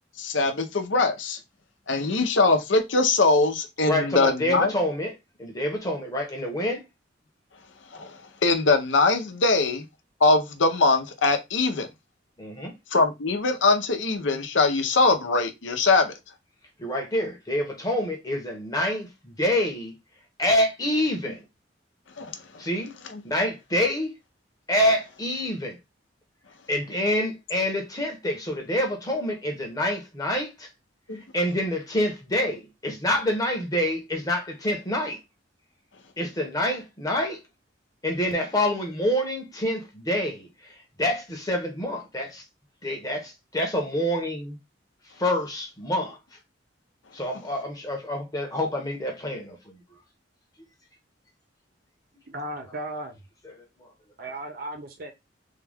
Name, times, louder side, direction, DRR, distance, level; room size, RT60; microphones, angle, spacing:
voice 1, 0.2-1.4 1.9-4.7 7.9-9.9 10.2-11.9 12.9-16.1 22.2-22.3 31.1-31.2, left 3 dB, 85° left, 0.8 m, -22 dB
voice 2, 3.9-6.8 12.4-12.7 16.8-19.9 20.4-21.4 22.6-22.9 23.2-24.1 24.7-25.8 26.7-30.7 31.1-35.2 36.2-37.4 38.0-42.4 42.8-44.6 45.0-46.2 47.1-49.8 53.6-53.9, left 1 dB, 20° left, 0.9 m, -27 dB
voice 3, 52.3-53.2 54.2-55.1, right 1 dB, 55° right, 0.5 m, -35 dB
3.7 x 2.3 x 3.4 m
head